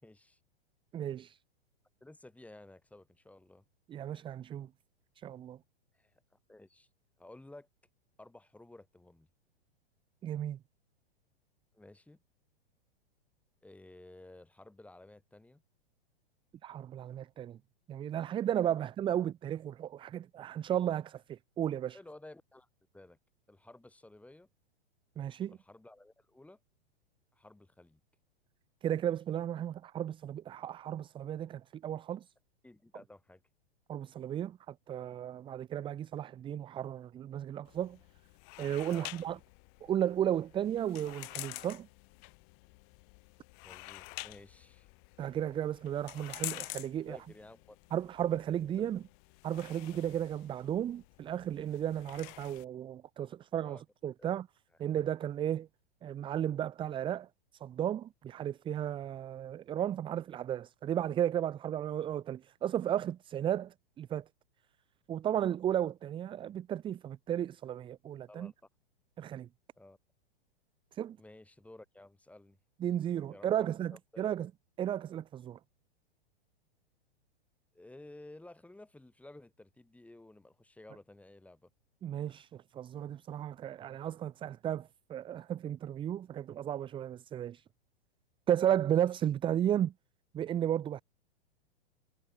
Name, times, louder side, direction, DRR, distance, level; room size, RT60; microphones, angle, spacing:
voice 1, 0.0-0.4 2.0-3.6 5.9-6.2 6.5-6.9 7.2-7.7 8.2-9.3 11.7-12.2 13.6-15.6 21.9-22.7 22.9-23.2 23.5-24.5 25.5-26.6 27.3-28.0 32.6-33.4 38.9-39.4 43.6-44.9 47.1-48.0 48.8-48.9 53.6-53.8 54.2-54.3 68.3-68.5 69.8-70.0 71.2-72.6 73.3-74.3 77.7-81.7, left 2 dB, 5° left, 6.4 m, -54 dB
voice 2, 0.9-1.4 3.9-4.7 5.2-5.6 10.2-10.6 16.6-17.6 17.9-22.0 25.2-25.6 28.8-32.3 33.9-38.0 38.6-39.4 39.8-41.9 45.2-47.2 47.9-49.0 49.4-54.5 54.8-55.7 56.0-57.3 57.6-64.2 65.1-68.5 69.2-69.5 70.9-71.2 72.8-74.5 74.8-75.6 82.0-87.6 88.5-89.9 90.3-91.0, right 10 dB, 15° right, 0.7 m, -34 dB
sound 1, 37.6-52.6, left 40 dB or more, 40° left, 3.3 m, -48 dB
figure-of-eight pair, 105°, 31 cm